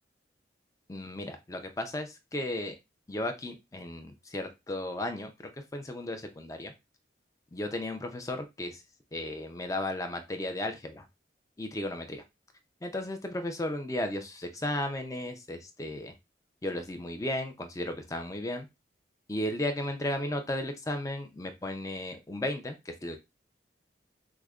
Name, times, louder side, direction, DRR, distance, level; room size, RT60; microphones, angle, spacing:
voice 1, 0.9-2.7 3.1-6.7 7.5-8.8 9.1-11.1 11.6-12.2 12.8-16.1 16.6-18.7 19.3-23.2, left 1 dB, 20° left, 6 dB, 0.4 m, -35 dB
4.8 x 2.1 x 2.3 m, 0.23 s
head